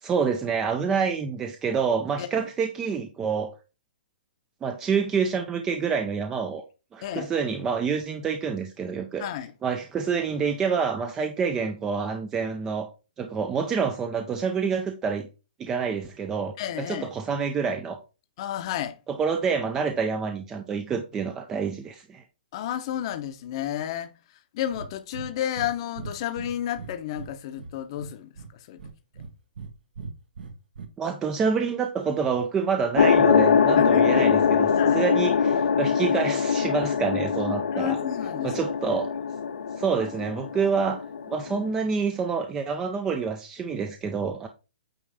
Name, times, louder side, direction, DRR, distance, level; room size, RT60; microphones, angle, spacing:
voice 1, 0.0-3.5 4.6-6.6 6.9-9.2 9.6-12.9 13.2-15.3 15.6-18.0 19.1-22.2 31.0-38.0 38.4-39.1 39.8-44.5, right 5 dB, 10° right, 0.4 m, -27 dB
voice 2, 7.0-7.3 9.2-9.5 16.6-17.1 18.4-19.0 22.5-28.8 33.8-34.1 34.8-35.0 37.7-38.5 38.9-39.0, left 11 dB, 30° left, 0.8 m, -32 dB
Breathing, 24.7-24.9 25.1-25.3 25.6-25.7 26.0-27.3 27.6-28.5 28.8-29.7 30.0-30.9, right 5 dB, 70° right, 1.2 m, -39 dB
sound 1, 33.0-41.7, left 6 dB, 85° left, 0.9 m, -23 dB
8.7 x 3.1 x 4.8 m
hypercardioid pair, 170°, 5 cm